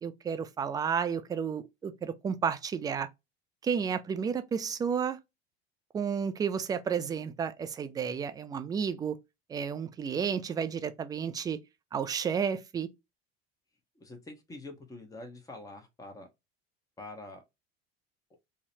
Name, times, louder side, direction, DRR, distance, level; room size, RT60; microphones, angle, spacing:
voice 1, 0.0-3.1 3.6-5.2 5.9-9.2 9.5-11.6 11.9-12.9, right 7 dB, 15° right, 0.3 m, -32 dB
voice 2, 13.9-16.3 17.0-17.4, left 2 dB, 10° left, 0.9 m, -45 dB
3.8 x 2.1 x 2.7 m
figure-of-eight pair, 70°, 31 cm